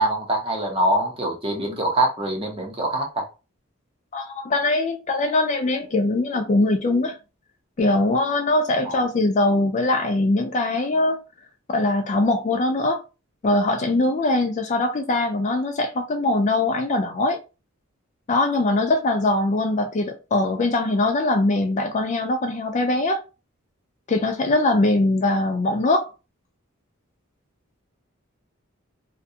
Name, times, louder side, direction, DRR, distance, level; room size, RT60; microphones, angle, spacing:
voice 1, 0.0-3.2 8.8-9.0, right 1 dB, 25° right, 0.7 m, -24 dB
voice 2, 4.1-7.2 7.8-11.2 11.7-13.0 13.4-17.4 18.3-23.2 24.1-26.1, left 2 dB, 35° left, 0.3 m, -22 dB
2.4 x 2.2 x 2.7 m
head